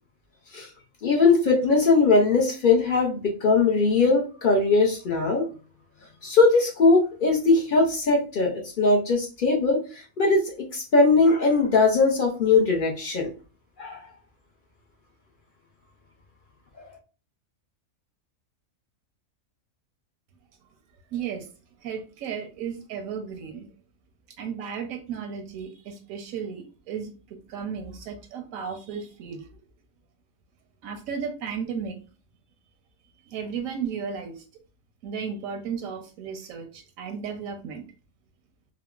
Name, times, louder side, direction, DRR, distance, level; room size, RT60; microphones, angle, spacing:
voice 1, 1.0-5.5 6.2-13.3 13.8-14.0, left 3 dB, 55° left, 0 dB, 0.5 m, -20 dB
voice 2, 21.1-21.5 21.8-23.7 24.4-29.5 30.8-31.9 33.3-34.4 35.0-37.8, right 6 dB, 85° right, 5 dB, 1.0 m, -34 dB
3.6 x 2.0 x 2.3 m, 0.35 s
omnidirectional pair, 1.4 m